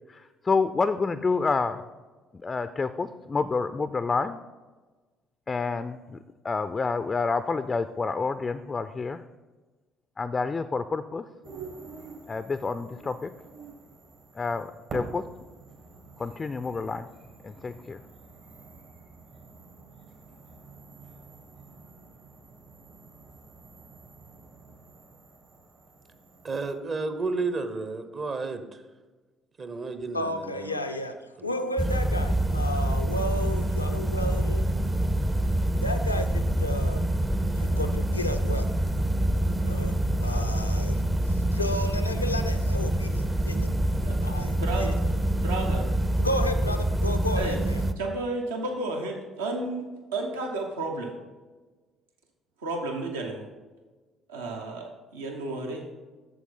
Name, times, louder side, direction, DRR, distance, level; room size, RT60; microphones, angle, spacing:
voice 1, 0.1-1.8 2.4-4.4 5.5-6.2 6.4-9.2 10.2-11.2 12.3-13.3 14.3-15.2 16.2-17.1 17.4-18.0, left 4 dB, 30° left, 12 dB, 0.4 m, -28 dB
sound 1, 11.4-26.7, right 4 dB, 60° right, 2.2 m, -47 dB
voice 2, 26.4-28.6 29.6-30.8 31.4-31.5, right 3 dB, 40° right, 9 dB, 0.9 m, -32 dB
voice 3, 30.1-31.1 31.4-34.6 35.8-37.0 37.6-38.7 39.6-43.7 44.2-44.9 46.2-47.8, left 1 dB, 90° left, 6 dB, 0.4 m, -33 dB
sound 2, 31.8-47.9, right 1 dB, 20° right, 0.6 m, -26 dB
voice 4, 44.5-45.0 45.4-45.9 47.3-47.6 48.0-51.1 52.6-53.4 54.3-55.8, right 2 dB, 75° right, 2 dB, 1.0 m, -32 dB
8.1 x 7.2 x 3.8 m, 1.3 s
figure-of-eight pair, 50°, 0 cm